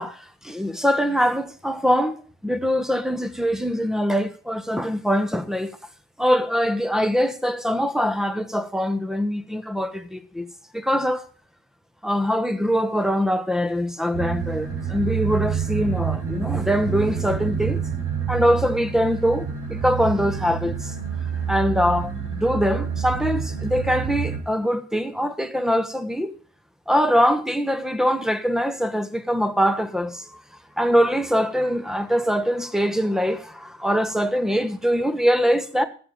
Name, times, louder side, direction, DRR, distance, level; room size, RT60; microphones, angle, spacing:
voice 1, 0.0-5.8 6.2-10.5 10.7-11.3 12.0-17.8 18.3-20.9 21.5-26.3 26.9-30.4 30.8-35.9, equal, ahead, 1.1 m, -23 dB
sound 1, 14.1-24.4, right 7 dB, 50° right, 5.0 m, -28 dB
13.0 x 7.7 x 5.4 m
cardioid pair, 90°, 30 cm